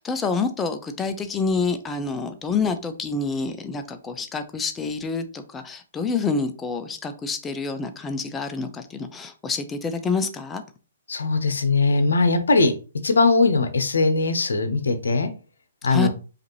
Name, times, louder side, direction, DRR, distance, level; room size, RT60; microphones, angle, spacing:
voice 1, 0.0-10.6 15.9-16.1, left 4 dB, 15° left, 8 dB, 0.5 m, -27 dB
voice 2, 11.1-12.7 13.0-15.3 15.8-16.1, left 3 dB, 80° left, 8 dB, 0.8 m, -20 dB
5.0 x 2.6 x 3.0 m, 0.34 s
hypercardioid pair, 140°, 0 cm